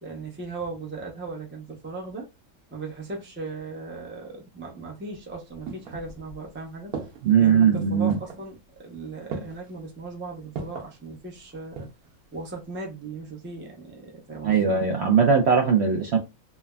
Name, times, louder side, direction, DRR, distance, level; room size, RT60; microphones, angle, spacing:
voice 1, 0.0-2.3 2.7-6.9 7.4-11.9 12.3-14.7, right 3 dB, 15° right, 0.4 m, -37 dB
sound 1, 5.1-6.5 6.9-7.5 8.1-8.5 9.3-9.7 10.6-11.0 11.5-12.1 12.4-12.5, right 4 dB, 90° right, 1.2 m, -37 dB
voice 2, 7.2-8.2 14.4-16.2, right 6 dB, 65° right, 0.7 m, -20 dB
3.2 x 2.0 x 2.3 m
omnidirectional pair, 1.5 m